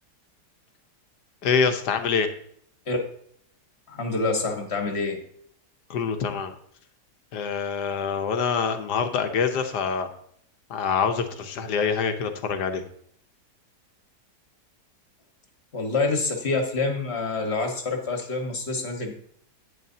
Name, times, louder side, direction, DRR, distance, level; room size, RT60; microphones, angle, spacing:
voice 1, 1.4-2.3 5.9-6.5 7.3-10.1 10.7-12.9, left 6 dB, 75° left, 7 dB, 1.5 m, -25 dB
voice 2, 3.9-5.2 15.7-19.1, left 3 dB, 40° left, 3 dB, 1.7 m, -27 dB
11.0 x 9.3 x 2.8 m, 0.64 s
omnidirectional pair, 1.8 m